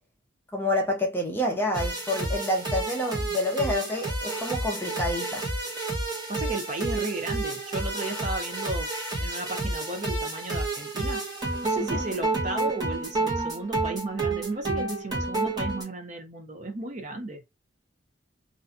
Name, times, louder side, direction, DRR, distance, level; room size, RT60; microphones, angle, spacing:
voice 1, 0.5-5.4 11.9-12.0, left 1 dB, 10° left, 0.6 m, -28 dB
sound 1, 1.7-15.8, right 2 dB, 20° right, 1.1 m, -30 dB
voice 2, 6.3-8.9 9.2-11.2 11.6-17.4, right 2 dB, 40° right, 0.6 m, -34 dB
2.5 x 2.2 x 2.5 m
head